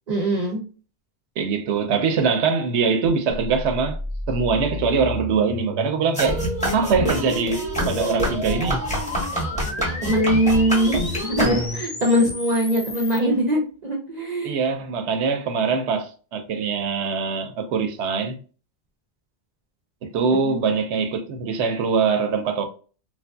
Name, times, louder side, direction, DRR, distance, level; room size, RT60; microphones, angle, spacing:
voice 1, 0.1-0.6 10.0-11.4 11.7-14.6 20.4-20.6, equal, 45° right, 0.6 m, -22 dB
voice 2, 1.4-4.0 4.3-6.4 6.7-8.8 14.4-18.4 20.0-22.6, right 5 dB, 85° right, 0.9 m, -23 dB
sound 1, 3.3-13.2, left 1 dB, 35° left, 0.5 m, -33 dB
sound 2, 6.1-12.0, equal, 5° left, 1.0 m, -26 dB
3.1 x 2.5 x 2.2 m
omnidirectional pair, 1.1 m